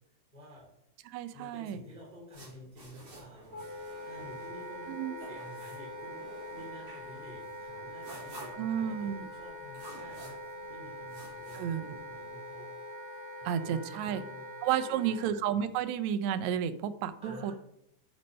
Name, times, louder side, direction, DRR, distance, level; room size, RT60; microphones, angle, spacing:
voice 1, 0.3-0.7 1.3-10.4 10.7-12.7 13.2-14.5 14.8-15.2 17.2-17.5, equal, 10° right, -4 dB, 2.9 m, -50 dB
voice 2, 1.1-1.8 4.9-5.1 8.6-9.3 11.5-12.0 13.4-14.2 14.6-17.5, right 9 dB, 80° right, 11 dB, 1.7 m, -32 dB
sound 1, 2.3-12.3, right 1 dB, 45° right, 4.9 m, -53 dB
Wind instrument woodwind instrument, 3.5-15.3, left 1 dB, 30° right, 2.3 m, -44 dB
10.5 x 4.4 x 5.4 m, 0.77 s
omnidirectional pair, 3.7 m